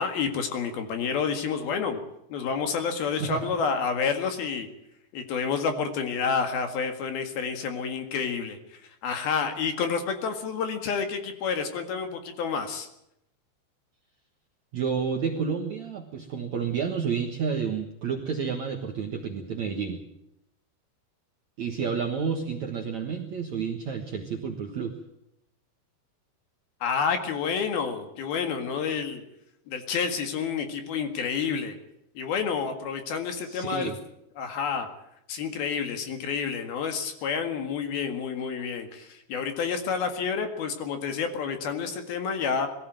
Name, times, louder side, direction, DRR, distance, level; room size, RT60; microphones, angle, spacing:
voice 1, 0.0-2.0 2.3-4.7 5.1-12.9 26.8-29.2 29.7-31.8 32.2-33.9 34.4-34.9 35.3-42.7, left 6 dB, 60° left, 7 dB, 3.5 m, -29 dB
voice 2, 3.2-3.5 14.7-20.0 21.6-25.0 33.4-34.0, right 6 dB, 60° right, 2 dB, 2.0 m, -30 dB
21.5 x 15.5 x 9.0 m, 0.80 s
omnidirectional pair, 5.3 m